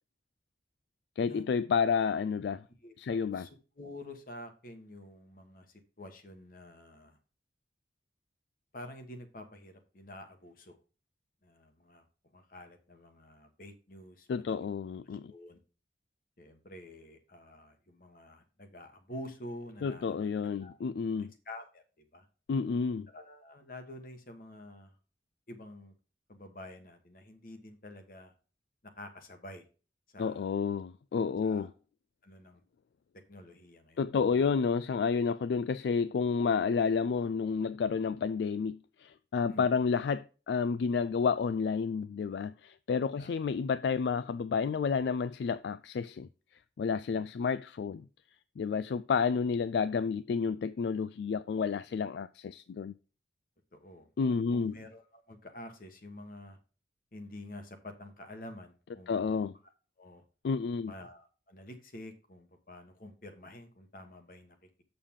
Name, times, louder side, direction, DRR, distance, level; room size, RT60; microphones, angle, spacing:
voice 1, 1.2-2.6 3.0-3.5 14.3-15.3 19.8-21.3 22.5-23.1 30.2-31.7 34.0-46.3 46.8-48.1 48.6-52.9 54.2-54.8 59.1-59.5 60.4-60.9, left 5 dB, 70° left, 0.3 m, -30 dB
voice 2, 2.8-3.5 3.8-7.2 8.7-10.8 11.4-12.1 12.3-14.7 15.1-15.6 16.4-20.8 21.4-22.3 23.1-25.0 25.5-25.9 26.3-28.3 28.8-29.7 30.1-30.5 31.4-31.7 32.2-32.6 33.3-34.5 39.5-39.7 43.2-43.4 47.1-47.3 53.8-54.1 54.5-56.6 57.1-59.3 60.0-60.2 60.8-64.8, left 1 dB, 50° left, 1.2 m, -48 dB
7.2 x 6.7 x 3.6 m
head